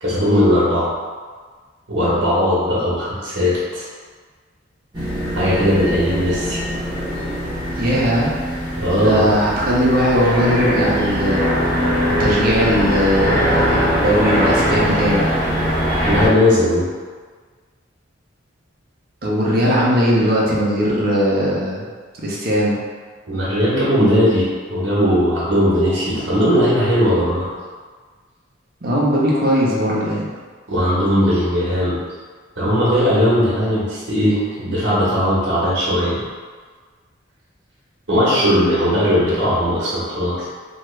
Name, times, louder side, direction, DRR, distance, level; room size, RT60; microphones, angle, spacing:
voice 1, 0.0-0.9 1.9-3.8 5.3-6.6 8.8-9.3 16.0-16.9 23.3-27.5 30.7-32.0 32.6-36.2 38.1-40.5, equal, 65° right, -7 dB, 1.0 m, -18 dB
sound 1, 4.9-16.3, equal, 25° right, 1.0 m, -21 dB
voice 2, 7.8-8.3 9.0-11.4 12.1-15.3 19.2-21.8 22.2-22.8 28.8-30.3, equal, 50° right, -5 dB, 0.7 m, -18 dB
3.0 x 2.3 x 3.1 m, 1.5 s
head